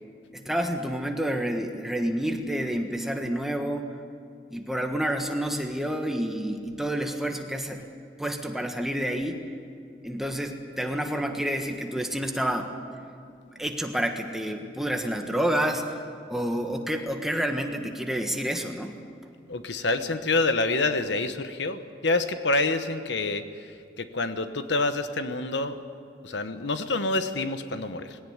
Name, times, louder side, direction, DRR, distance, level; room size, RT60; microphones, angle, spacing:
voice 1, 0.3-4.0 4.5-7.8 8.2-9.4 10.0-12.7 13.6-16.0 16.3-19.0, right 1 dB, ahead, 3 dB, 1.5 m, -29 dB
voice 2, 19.5-25.8 26.2-28.2, left 2 dB, 75° left, 9 dB, 1.1 m, -27 dB
20.5 x 17.5 x 9.5 m, 2.5 s
head